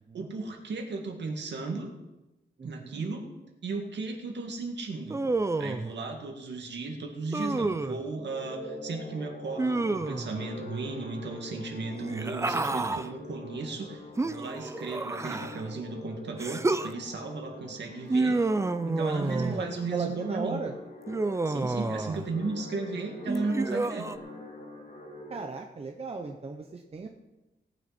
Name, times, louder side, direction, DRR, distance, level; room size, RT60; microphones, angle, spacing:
voice 1, 0.1-1.9 2.6-3.2 3.6-5.2 5.6-18.4 18.8-20.6 21.5-24.1, right 3 dB, 70° right, 3 dB, 2.2 m, -35 dB
voice 2, 2.6-3.0 19.2-20.7 25.3-27.1, right 4 dB, 35° right, 3 dB, 0.9 m, -36 dB
Human voice, 5.1-5.9 7.3-8.0 9.6-10.4 11.9-13.1 14.2-15.7 16.4-16.9 18.1-19.7 21.1-22.3 23.3-24.2, right 2 dB, 15° right, 0.5 m, -29 dB
sound 1, 8.2-25.4, left 1 dB, 50° left, 2.9 m, -44 dB
18.0 x 9.2 x 4.3 m, 1.0 s
wide cardioid pair, 145°, 18 cm